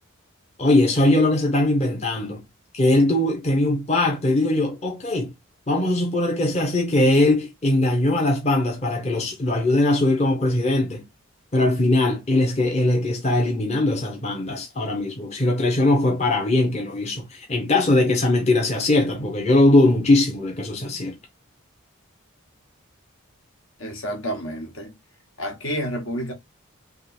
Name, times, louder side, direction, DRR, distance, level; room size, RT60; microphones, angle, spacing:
voice 1, 0.6-2.4 2.7-5.3 5.7-11.0 11.5-21.2, left 2 dB, 30° left, 0.8 m, -20 dB
voice 2, 23.8-24.9 25.4-26.3, equal, 70° left, 1.5 m, -29 dB
3.6 x 3.0 x 4.2 m
head